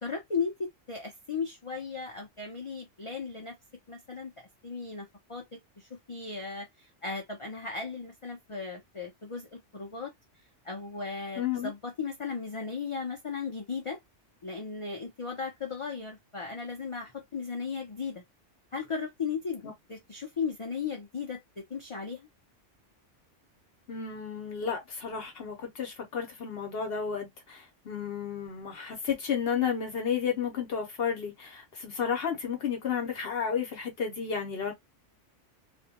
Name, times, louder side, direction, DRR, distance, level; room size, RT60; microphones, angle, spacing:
voice 1, 0.0-3.6 3.9-10.1 10.6-14.0 14.4-18.2 18.7-19.6 19.9-22.3, left 5 dB, 40° left, 0.5 m, -36 dB
voice 2, 11.4-11.7 19.6-19.7 23.9-34.7, left 7 dB, 60° left, 0.9 m, -32 dB
2.5 x 2.2 x 2.7 m
omnidirectional pair, 1.3 m